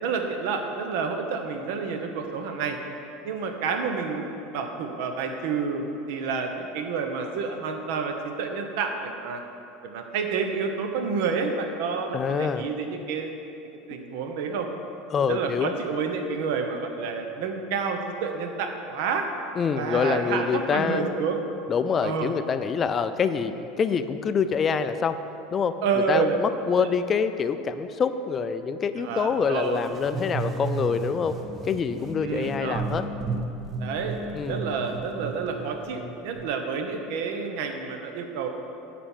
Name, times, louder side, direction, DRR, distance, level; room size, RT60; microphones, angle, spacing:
voice 1, 0.0-2.8 3.2-9.4 9.8-13.3 13.9-14.7 15.3-19.3 19.8-21.4 22.0-22.3 25.8-26.4 26.7-26.8 29.0-29.8 32.2-32.8 33.8-38.5, right 5 dB, 70° right, 4 dB, 1.0 m, -29 dB
voice 2, 12.1-12.7 15.1-15.7 19.6-21.1 21.7-25.2 25.5-25.8 26.1-31.4 31.6-33.1 34.3-34.6, left 6 dB, 25° left, 10 dB, 0.4 m, -26 dB
sound 1, 29.7-36.4, right 3 dB, 25° right, 0.7 m, -34 dB
10.0 x 4.3 x 7.3 m, 2.9 s
supercardioid pair, 150°, 0 cm